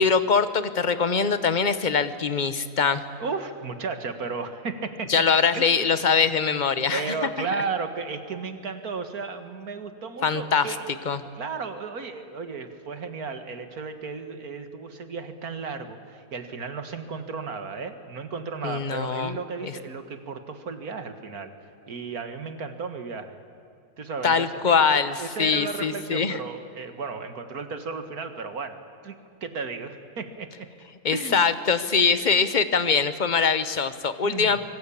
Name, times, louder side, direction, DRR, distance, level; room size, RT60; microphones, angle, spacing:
voice 1, 0.0-3.0 5.1-7.0 10.2-10.7 11.1-11.2 18.6-19.4 19.6-19.7 24.2-26.4 31.0-34.6, left 5 dB, 35° left, 12 dB, 1.1 m, -23 dB
voice 2, 3.2-5.1 5.5-5.9 6.9-10.9 11.4-21.5 21.9-23.4 24.0-24.5 24.9-30.7 31.1-31.5 34.2-34.6, right 4 dB, 65° right, 8 dB, 2.2 m, -34 dB
25.0 x 24.5 x 8.7 m, 2.5 s
omnidirectional pair, 1.7 m